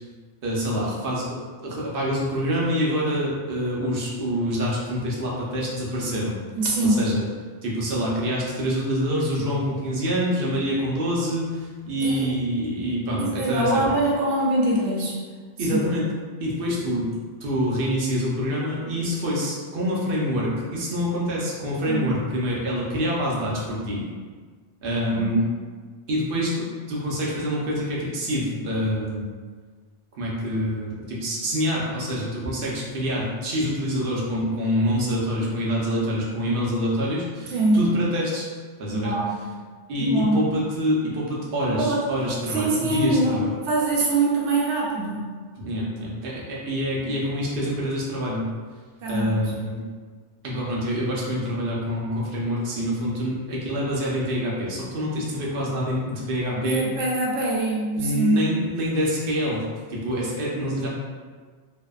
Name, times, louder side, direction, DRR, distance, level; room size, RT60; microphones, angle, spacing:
voice 1, 0.4-6.3 6.9-7.2 7.6-13.8 15.6-16.0 16.4-17.1 17.4-24.1 24.8-25.4 26.1-29.3 30.2-38.5 38.8-39.1 39.9-43.5 45.6-48.4 49.1-49.9 50.4-56.9 58.0-59.6 59.9-60.9, equal, 60° right, -4 dB, 0.7 m, -26 dB
voice 2, 6.5-7.0 12.0-12.4 13.2-15.2 15.7-15.8 21.9-22.1 25.1-25.3 37.5-37.8 39.0-39.4 40.0-40.4 41.8-42.1 42.5-43.4 43.7-45.2 49.0-49.5 56.5-58.4, right 2 dB, 90° right, -4 dB, 0.9 m, -23 dB
2.7 x 2.0 x 2.2 m, 1.5 s
omnidirectional pair, 1.2 m